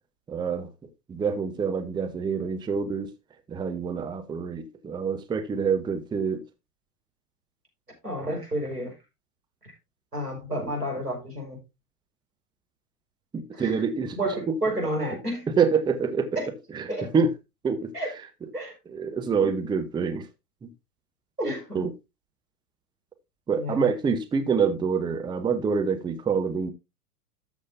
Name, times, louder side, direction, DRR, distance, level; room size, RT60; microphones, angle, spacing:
voice 1, 0.3-0.7 1.1-3.1 3.5-6.4 13.3-14.2 15.6-16.4 16.7-17.3 17.6-17.9 18.9-20.3 21.7-21.9 23.5-26.7, right 5 dB, 10° right, 0.9 m, -26 dB
voice 2, 8.0-8.9 10.1-11.6 13.5-13.7 14.2-15.5 16.4-16.5 16.9-17.1 17.9-18.1 18.5-18.7 19.4-19.7 21.4-21.9 23.6-23.9, right 1 dB, 90° right, 5.2 m, -30 dB
13.0 x 7.3 x 2.7 m
figure-of-eight pair, 95°, 46 cm